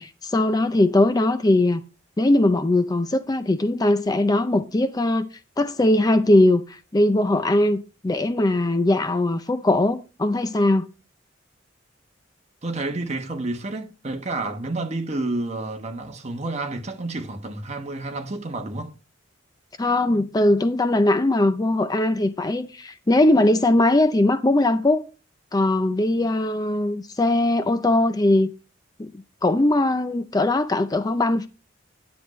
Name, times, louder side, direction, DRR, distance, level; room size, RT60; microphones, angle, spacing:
voice 1, 0.0-1.8 2.2-5.3 5.6-10.9 19.8-25.1 25.5-28.5 29.0-29.1 29.4-31.5, left 1 dB, 20° left, 0.5 m, -20 dB
voice 2, 12.6-18.9, right 2 dB, 35° right, 1.2 m, -30 dB
9.9 x 7.8 x 3.1 m
head